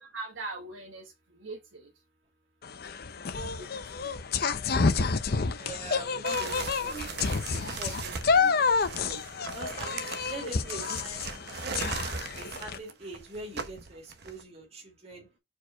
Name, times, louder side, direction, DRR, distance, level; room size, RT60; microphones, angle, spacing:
voice 1, 0.0-1.0 1.4-1.9 3.2-3.8 4.0-4.1, right 3 dB, 85° right, 1.5 m, -41 dB
sound 1, 2.6-12.8, left 4 dB, 50° left, 0.6 m, -29 dB
voice 2, 5.6-7.2 7.5-9.2 9.5-11.3 11.6-15.3, right 2 dB, 35° right, 2.3 m, -43 dB
sound 2, 6.3-14.4, right 4 dB, 55° right, 0.9 m, -39 dB
4.8 x 4.4 x 5.8 m
head